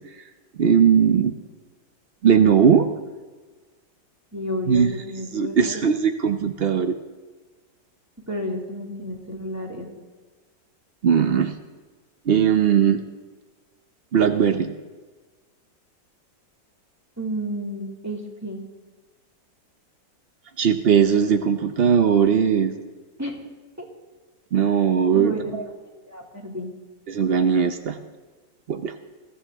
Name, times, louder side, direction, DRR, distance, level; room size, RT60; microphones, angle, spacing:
voice 1, 0.6-1.3 2.2-2.9 4.7-4.9 5.3-7.0 11.0-11.6 12.3-13.0 14.1-14.7 20.6-22.8 24.5-25.6 27.1-28.0 28.7-28.9, right 7 dB, 80° right, 8 dB, 0.5 m, -19 dB
voice 2, 4.3-5.9 8.3-9.9 17.2-18.6 23.2-23.4 23.8-23.9 25.1-25.5 26.1-26.7, equal, 10° right, -1 dB, 2.2 m, -31 dB
21.5 x 15.5 x 3.6 m, 1.4 s
omnidirectional pair, 2.0 m